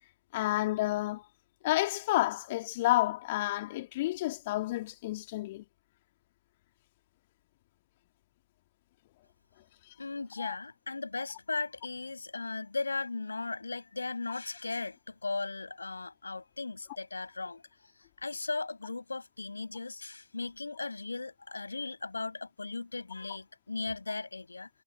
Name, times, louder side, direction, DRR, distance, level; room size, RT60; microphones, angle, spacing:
voice 1, 0.3-1.3 1.6-5.6 10.4-10.6, left 17 dB, 55° left, 2.3 m, -30 dB
voice 2, 10.0-17.6 18.2-24.7, left 3 dB, 80° left, 7.6 m, -37 dB
figure-of-eight pair, 90°, 0 cm